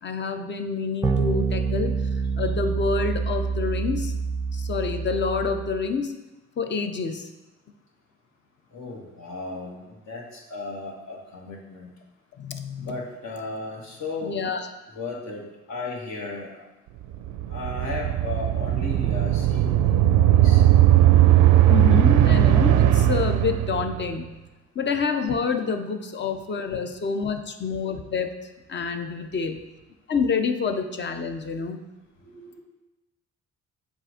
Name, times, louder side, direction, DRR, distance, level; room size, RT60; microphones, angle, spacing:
voice 1, 0.0-1.9 2.4-4.1 4.5-6.1 6.6-7.3 12.4-12.9 14.2-14.7 21.7-24.3 24.7-28.4 28.7-29.6 30.1-31.8, left 5 dB, 35° left, 6 dB, 0.6 m, -27 dB
sound 1, 1.0-5.8, right 5 dB, 10° right, 0.5 m, -27 dB
voice 2, 8.7-11.9 12.8-16.6 17.5-20.6 32.2-32.6, left 3 dB, 65° left, -2 dB, 1.6 m, -36 dB
sound 2, 17.1-24.1, right 12 dB, 85° right, 0.5 m, -18 dB
7.4 x 2.6 x 5.0 m, 1.1 s
cardioid pair, 90°, 30 cm